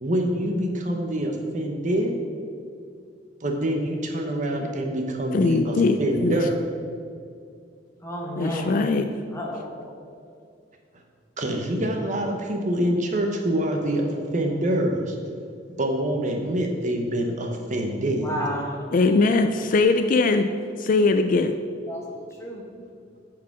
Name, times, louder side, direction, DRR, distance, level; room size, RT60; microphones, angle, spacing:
voice 1, 0.0-2.1 3.4-6.5 11.4-15.1 15.8-18.3, right 1 dB, 40° right, 2 dB, 1.0 m, -25 dB
voice 2, 5.3-6.4 8.4-9.1 18.9-20.5 20.8-21.5, left 3 dB, 45° left, 8 dB, 0.4 m, -21 dB
voice 3, 8.0-8.7 9.3-9.8 18.2-18.7 21.9-22.0 22.4-22.6, equal, 15° left, -3 dB, 1.6 m, -31 dB
9.4 x 4.8 x 6.0 m, 2.3 s
head